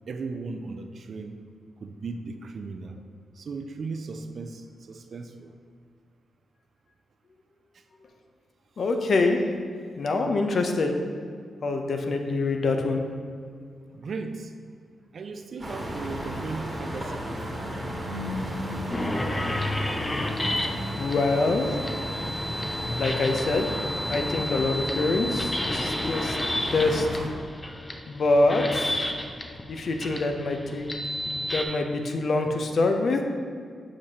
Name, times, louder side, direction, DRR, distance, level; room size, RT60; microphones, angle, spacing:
voice 1, 0.1-1.4 1.8-3.0 3.3-5.5 7.7-7.8 13.9-14.5 15.1-17.9, right 4 dB, 65° right, 7 dB, 0.4 m, -37 dB
voice 2, 8.8-9.4 10.0-11.0 11.6-13.0 21.0-21.8 23.0-23.7 24.1-26.4 26.7-27.1 28.1-29.1 29.7-30.9 31.3-33.2, left 3 dB, 65° left, 5 dB, 0.6 m, -25 dB
sound 1, 15.6-27.3, equal, 25° right, 1.3 m, -33 dB
sound 2, 18.9-31.7, left 1 dB, 25° left, 0.6 m, -32 dB
7.3 x 4.9 x 2.8 m, 2.2 s
supercardioid pair, 50°, 0 cm